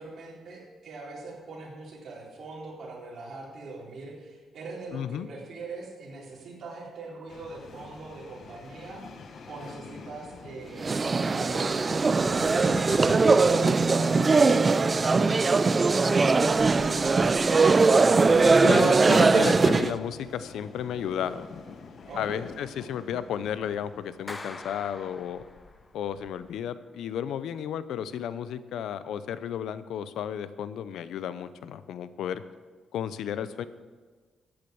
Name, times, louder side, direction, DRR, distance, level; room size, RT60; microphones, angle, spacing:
voice 1, 0.0-9.0 9.5-13.8 14.2-15.6 22.1-22.4, right 3 dB, 50° right, -5 dB, 4.1 m, -42 dB
voice 2, 4.9-5.3 18.6-21.5 22.2-25.4 25.9-32.4 32.9-33.6, left 9 dB, 90° left, 14 dB, 0.6 m, -33 dB
sound 1, 7.3-26.5, left 5 dB, 55° left, 1.2 m, -46 dB
sound 2, 10.8-20.0, right 4 dB, 30° right, 0.5 m, -21 dB
Clapping, 24.3-25.9, left 2 dB, 20° left, 0.7 m, -43 dB
14.0 x 8.6 x 7.1 m, 1.4 s
cardioid pair, 130°, 0 cm